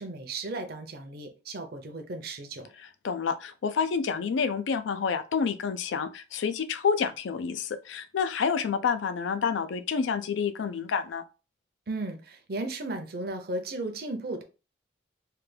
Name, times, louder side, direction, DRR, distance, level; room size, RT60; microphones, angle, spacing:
voice 1, 0.0-2.7 11.9-14.4, right 2 dB, 55° right, 0.6 m, -35 dB
voice 2, 2.8-11.2, left 6 dB, 80° left, 0.4 m, -29 dB
3.3 x 2.2 x 3.2 m
head